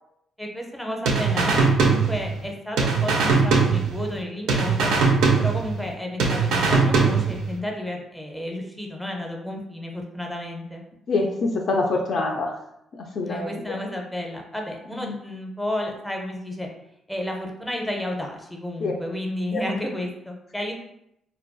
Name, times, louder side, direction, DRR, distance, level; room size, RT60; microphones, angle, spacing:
voice 1, 0.4-5.0 5.4-10.8 13.2-16.7 17.1-20.7, left 1 dB, 5° left, 1 dB, 0.5 m, -32 dB
sound 1, 1.1-2.5 2.8-4.2 4.5-5.9 6.2-7.5, right 4 dB, 90° right, 0.4 m, -21 dB
voice 2, 11.1-12.5 13.0-13.8 15.0-15.1 18.8-18.9 19.5-19.6, left 3 dB, 60° left, 0 dB, 0.3 m, -25 dB
2.3 x 2.2 x 2.5 m, 0.78 s
cardioid pair, 90°, 0 cm